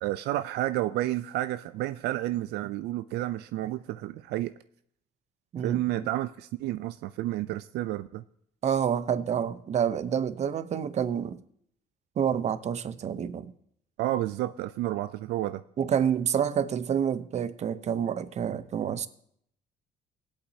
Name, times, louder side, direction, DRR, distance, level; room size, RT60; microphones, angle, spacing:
voice 1, 0.0-4.5 5.6-8.2 14.0-15.6, right 15 dB, 80° right, 0.4 m, -30 dB
voice 2, 5.5-6.0 8.6-11.4 12.2-13.5 15.8-19.1, right 8 dB, 40° right, 0.7 m, -28 dB
20.5 x 8.3 x 2.7 m
cardioid pair, 110°, 17 cm